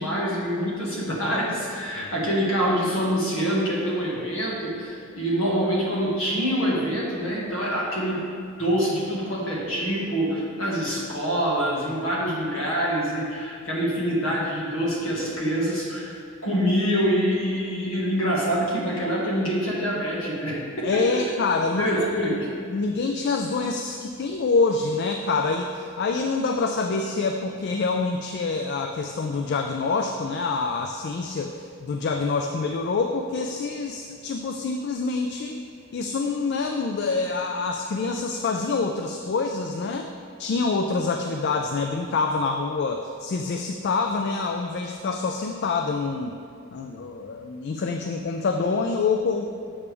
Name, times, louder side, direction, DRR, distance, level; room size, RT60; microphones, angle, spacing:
voice 1, 0.0-8.2 8.6-16.2 16.4-21.0 21.8-22.5, equal, 65° left, -5 dB, 1.7 m, -25 dB
voice 2, 20.8-22.1 22.7-35.6 35.9-40.1 40.4-46.4 46.7-49.5, left 4 dB, 50° left, 4 dB, 0.3 m, -26 dB
7.1 x 6.7 x 3.4 m, 2.3 s
head